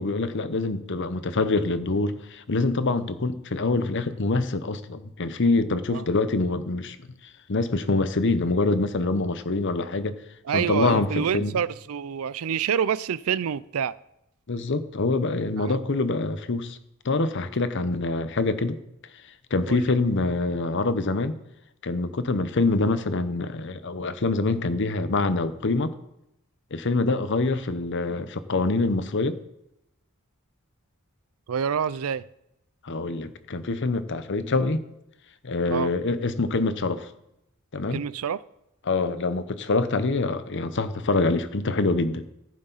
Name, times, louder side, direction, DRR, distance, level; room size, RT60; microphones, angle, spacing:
voice 1, 0.0-7.0 7.5-10.2 10.5-11.6 14.5-16.8 17.0-18.8 19.5-21.4 21.8-25.9 26.7-29.4 32.8-34.8 35.4-37.1 37.7-38.0 38.9-42.3, left 3 dB, 55° left, 12 dB, 0.8 m, -25 dB
voice 2, 10.5-13.9 15.6-15.8 19.7-19.8 31.5-32.2 35.7-35.9 37.9-38.4, right 7 dB, 75° right, 19 dB, 0.4 m, -27 dB
15.0 x 8.7 x 4.1 m, 0.83 s
head